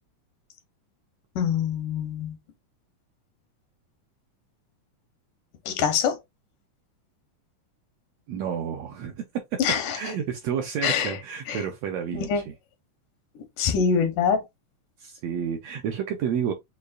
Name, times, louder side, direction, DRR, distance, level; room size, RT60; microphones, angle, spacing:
voice 1, 1.4-2.4 5.7-6.2 9.6-10.0 10.8-11.2 11.5-11.6 12.1-12.4 13.6-14.4, left 7 dB, 85° left, 2.5 m, -24 dB
voice 2, 8.3-9.2 9.9-12.3 15.0-16.5, right 8 dB, 75° right, 1.6 m, -30 dB
6.6 x 2.4 x 2.5 m
omnidirectional pair, 3.6 m